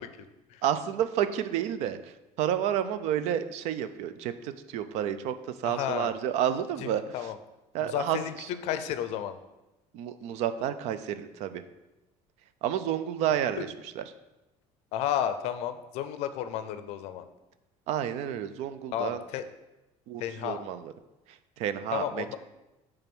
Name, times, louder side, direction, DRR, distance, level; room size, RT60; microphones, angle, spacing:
voice 1, 0.6-2.0 2.4-5.3 5.6-7.0 7.7-8.2 9.9-11.6 12.6-13.7 14.0-14.1 17.9-19.2 20.1-20.8 21.6-22.4, right 10 dB, 60° right, 12 dB, 0.5 m, -30 dB
voice 2, 5.6-6.1 6.8-7.4 7.8-8.3 8.6-9.4 13.6-13.7 14.9-17.2 18.9-19.4 20.2-20.6 21.9-22.4, left 10 dB, 60° left, 10 dB, 0.5 m, -32 dB
6.9 x 3.4 x 6.0 m, 0.99 s
cardioid pair, 170°, 13 cm